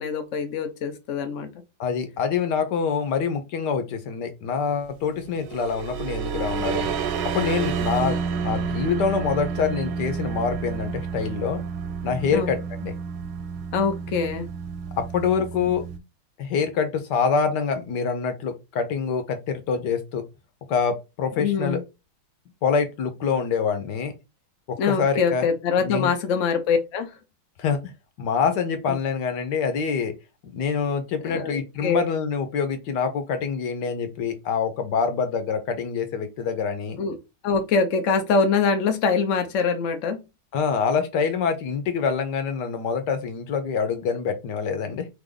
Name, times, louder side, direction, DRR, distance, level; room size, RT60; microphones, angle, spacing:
voice 1, 0.0-1.5 12.3-12.5 13.7-14.5 21.4-21.8 24.8-27.1 31.2-32.0 37.0-37.2 37.4-40.2, left 5 dB, 90° left, 0.6 m, -24 dB
voice 2, 1.8-6.9 7.3-11.6 12.0-12.9 14.9-15.8 16.4-20.2 20.7-21.8 22.6-24.1 24.7-25.5 25.8-26.1 27.6-27.8 28.2-30.1 30.5-37.0 40.5-45.1, left 6 dB, 60° left, 1.3 m, -25 dB
sound 1, 5.3-16.0, right 6 dB, 80° right, 1.4 m, -30 dB
3.5 x 3.5 x 3.8 m
omnidirectional pair, 2.4 m